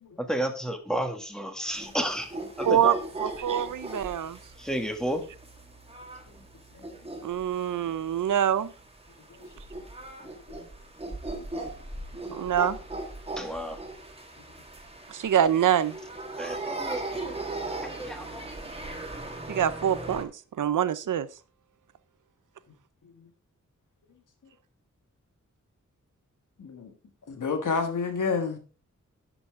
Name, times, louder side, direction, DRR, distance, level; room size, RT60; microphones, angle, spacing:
voice 1, 0.2-3.0 4.6-5.2 13.4-13.8 16.4-17.2 17.7-18.5, equal, ahead, 1.7 m, -32 dB
sound 1, 1.7-20.2, right 2 dB, 20° right, 1.8 m, -38 dB
voice 2, 3.2-4.4 7.2-8.7 12.3-12.8 15.1-16.0 19.5-20.3 20.6-21.3, right 9 dB, 85° right, 0.6 m, -25 dB
voice 3, 26.6-26.9 27.3-28.6, left 4 dB, 80° left, 1.6 m, -31 dB
11.0 x 7.0 x 3.6 m
wide cardioid pair, 100°, 30 cm